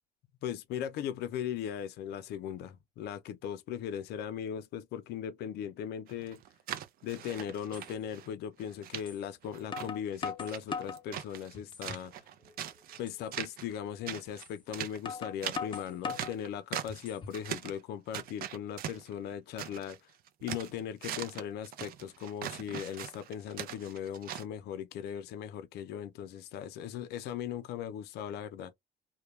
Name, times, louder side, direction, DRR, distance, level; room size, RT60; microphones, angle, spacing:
voice 1, 0.4-6.4 7.0-12.1 13.0-20.0 20.4-28.7, left 9 dB, 75° left, 0.5 m, -38 dB
sound 1, 6.1-8.3 8.6-9.0 9.4-11.6 11.8-13.0 13.3-13.8 14.1-17.1 17.3-17.8 18.1-20.0 20.3-24.4, right 11 dB, 60° right, 0.5 m, -41 dB
sound 2, 7.1-7.2 7.7-7.9 9.1-9.2 9.7-11.0 11.5-12.1 12.5-12.6 13.1-13.2 14.4-14.5 15.0-16.4 16.9-17.4, left 5 dB, 30° left, 0.5 m, -39 dB
2.2 x 2.1 x 3.0 m
cardioid pair, 110°, 17 cm